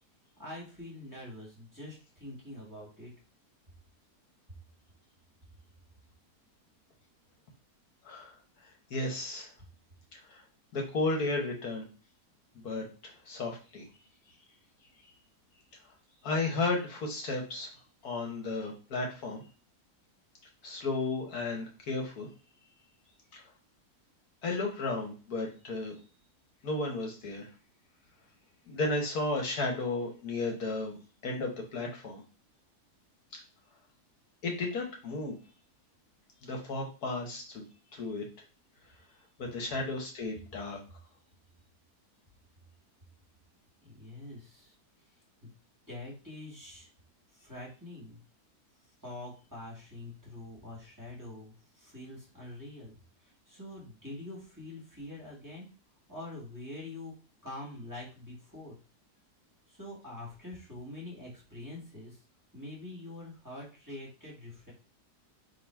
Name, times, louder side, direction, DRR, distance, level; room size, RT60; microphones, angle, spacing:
voice 1, 0.4-3.1 43.8-44.7 45.4-45.5 45.9-46.9 47.3-48.2 49.0-53.0 53.2-55.7 56.1-57.1 57.4-58.8 59.7-62.2 62.5-64.7, left 1 dB, 10° right, -5 dB, 1.8 m, -45 dB
voice 2, 8.9-9.5 10.3-10.4 10.7-11.8 12.5-12.8 13.2-13.8 16.2-17.7 18.0-19.4 20.6-22.3 23.3-23.4 24.4-26.0 26.6-27.4 28.7-31.0 31.2-32.2 34.4-35.4 36.4-37.6 37.9-38.2 39.4-40.8, left 2 dB, 70° left, 1 dB, 1.5 m, -33 dB
3.9 x 3.1 x 4.4 m, 0.36 s
omnidirectional pair, 1.7 m